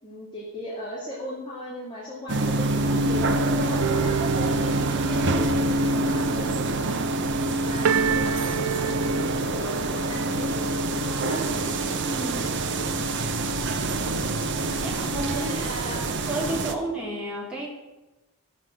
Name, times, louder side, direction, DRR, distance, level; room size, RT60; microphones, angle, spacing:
voice 1, 0.0-7.0 7.6-9.0 9.3-11.4 15.2-16.1, left 1 dB, 20° left, -6 dB, 2.6 m, -37 dB
sound 1, 2.3-16.7, right 2 dB, 55° right, 0.9 m, -26 dB
Organ, 2.7-13.8, right 5 dB, 25° right, 1.3 m, -43 dB
sound 2, 3.8-9.6, right 8 dB, 75° right, 0.4 m, -30 dB
voice 2, 12.0-12.5 14.8-15.8 16.3-17.7, right 1 dB, 5° right, -5 dB, 3.0 m, -32 dB
12.5 x 7.5 x 6.3 m, 1.0 s
head